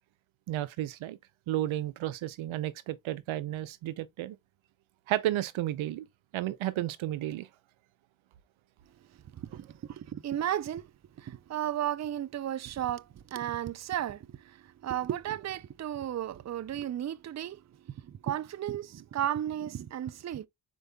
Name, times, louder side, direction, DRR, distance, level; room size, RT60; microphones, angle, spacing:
voice 1, 0.5-1.2 1.5-4.4 5.1-6.1 6.3-7.5, right 14 dB, 90° right, 0.5 m, -32 dB
voice 2, 9.3-10.9 11.2-20.5, right 11 dB, 40° right, 0.4 m, -34 dB
5.2 x 4.4 x 2.2 m
cardioid pair, 65°, 46 cm